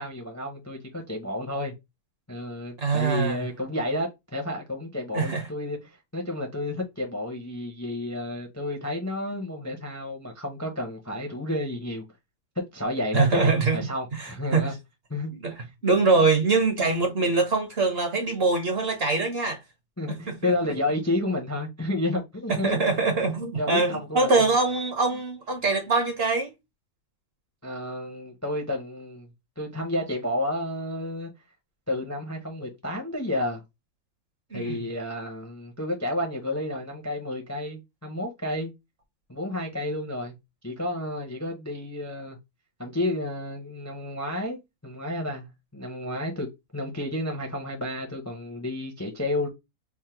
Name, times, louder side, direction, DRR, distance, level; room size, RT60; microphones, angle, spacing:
voice 1, 0.0-1.7 2.3-12.0 12.7-14.7 15.1-15.3 20.0-22.9 23.6-24.5 27.6-29.3 29.6-31.3 31.9-33.6 34.5-38.7 39.3-40.3 40.6-42.4 42.8-46.5 46.7-49.5, left 1 dB, 15° left, 0.5 m, -31 dB
voice 2, 2.8-3.4 5.1-5.5 13.1-13.8 14.2-14.7 15.4-19.6 20.1-20.5 22.5-26.5 34.5-34.8, right 3 dB, 50° right, 1.0 m, -23 dB
3.6 x 2.1 x 4.4 m
omnidirectional pair, 1.6 m